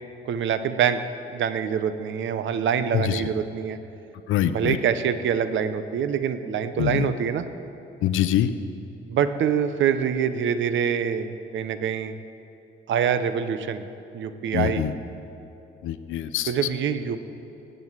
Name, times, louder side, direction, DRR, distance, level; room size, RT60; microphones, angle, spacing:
voice 1, 0.2-1.0 1.3-3.8 4.5-7.5 9.1-12.1 12.9-13.9 14.1-14.9 16.5-17.2, right 8 dB, 70° right, 11 dB, 0.9 m, -25 dB
voice 2, 4.3-4.8 6.8-7.1 8.0-8.5 14.5-14.9 15.8-16.5, left 11 dB, 85° left, 11 dB, 0.7 m, -24 dB
18.0 x 8.0 x 8.1 m, 2.9 s
cardioid pair, 90°, 20 cm